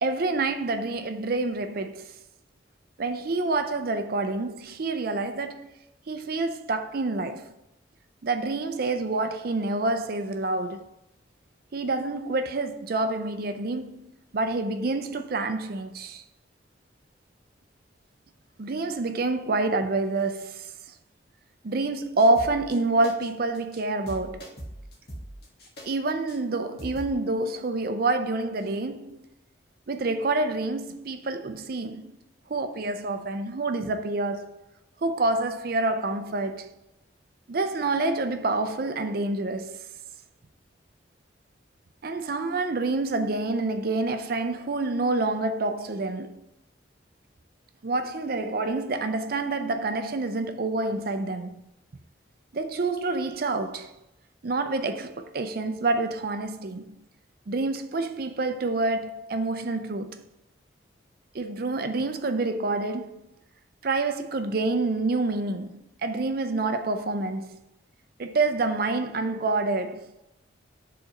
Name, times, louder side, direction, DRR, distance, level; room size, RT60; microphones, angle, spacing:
voice 1, 0.0-2.2 3.0-5.7 6.1-7.5 8.2-10.9 11.7-14.1 14.3-16.2 18.6-20.7 21.6-24.5 25.8-29.2 29.9-32.2 32.5-34.6 35.0-36.7 37.5-39.8 42.0-46.4 47.8-51.6 52.5-53.9 54.4-57.0 57.5-60.2 61.3-63.2 63.8-67.6 68.2-70.1, right 2 dB, 50° right, 0.5 m, -27 dB
sound 1, 22.2-22.8 23.0-23.3 23.5-23.8 24.1-25.9 26.3-26.4 26.8-27.1, right 1 dB, 55° left, 1.6 m, -40 dB
5.1 x 4.0 x 5.2 m
head